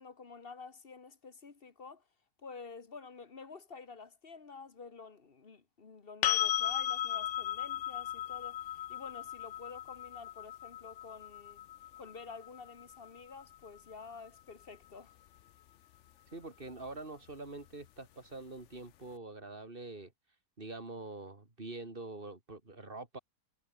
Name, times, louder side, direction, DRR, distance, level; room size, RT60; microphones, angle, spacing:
voice 1, 0.0-2.0 2.4-11.7 12.0-15.2, left 4 dB, 35° left, 1.6 m, -50 dB
sound 1, 6.2-14.0 16.9-17.0, left 11 dB, 60° left, 0.8 m, -36 dB
voice 2, 16.3-20.1 20.6-23.2, right 2 dB, 35° right, 3.6 m, -45 dB
omnidirectional pair, 1.7 m